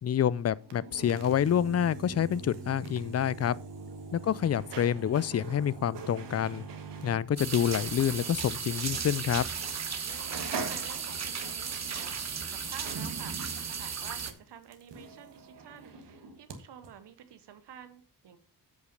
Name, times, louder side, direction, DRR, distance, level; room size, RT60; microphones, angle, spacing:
voice 1, 0.0-3.5 4.1-6.6 7.0-9.4, left 9 dB, 40° left, 0.4 m, -27 dB
sound 1, 0.6-8.4 8.7-8.8 9.6-9.8 10.1-16.6 16.8-16.9, right 4 dB, 90° right, 1.4 m, -43 dB
sound 2, 7.4-14.3, right 6 dB, 40° right, 1.0 m, -35 dB
voice 2, 10.0-18.4, right 9 dB, 75° right, 0.9 m, -50 dB
8.1 x 5.3 x 5.2 m
cardioid pair, 75°, 41 cm